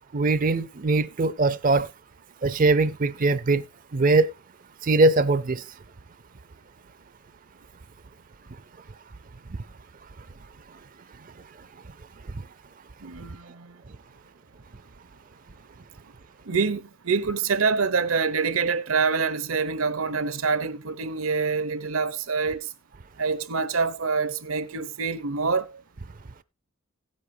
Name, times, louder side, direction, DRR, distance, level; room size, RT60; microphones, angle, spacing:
voice 1, 0.1-1.9 2.4-3.6 3.9-4.3 4.8-5.6 12.3-12.4, right 3 dB, 40° right, 0.5 m, -21 dB
voice 2, 13.0-13.8 16.5-22.7 23.2-25.8, right 5 dB, 75° right, 0.8 m, -26 dB
16.5 x 8.3 x 2.7 m
head